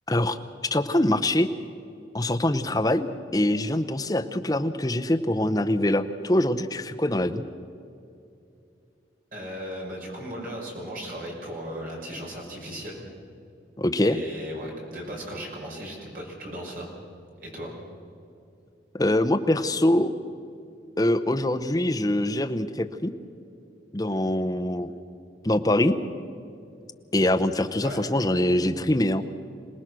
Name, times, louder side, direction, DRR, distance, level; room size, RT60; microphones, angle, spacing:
voice 1, 0.1-0.4 0.7-1.5 2.1-7.4 13.8-14.2 18.9-20.1 21.0-23.1 23.9-24.9 25.4-26.0 27.1-29.3, left 1 dB, 20° left, 8 dB, 0.8 m, -24 dB
voice 2, 9.3-13.0 14.1-16.9 17.4-17.7 27.8-28.0, equal, 50° right, -2 dB, 5.5 m, -36 dB
26.5 x 19.0 x 6.2 m, 2.6 s
head